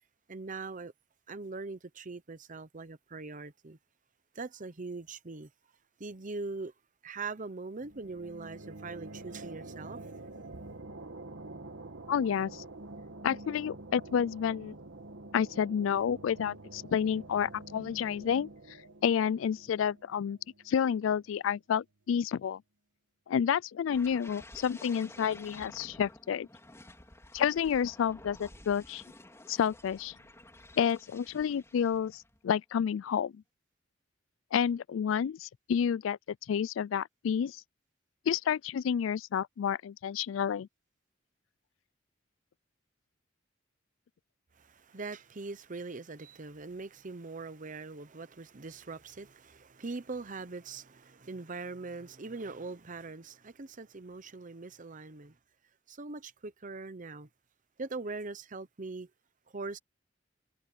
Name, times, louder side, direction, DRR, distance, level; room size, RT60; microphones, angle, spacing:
voice 1, 0.3-0.9 1.3-3.8 4.3-5.5 6.0-6.7 7.0-10.0 44.6-55.3 55.9-57.3 57.8-59.1 59.5-59.8, right 3 dB, 45° right, 0.9 m, -41 dB
sound 1, 7.8-21.2, right 2 dB, 85° right, 2.0 m, -47 dB
voice 2, 12.1-12.6 13.2-14.7 15.3-18.5 19.0-20.4 20.7-22.6 23.3-26.5 27.3-29.0 29.5-30.1 30.8-33.4 34.5-36.2 36.5-37.6 38.3-40.7, left 8 dB, 85° left, 0.3 m, -30 dB
sound 2, 23.9-32.4 32.8-33.0, left 1 dB, 15° left, 4.3 m, -52 dB
head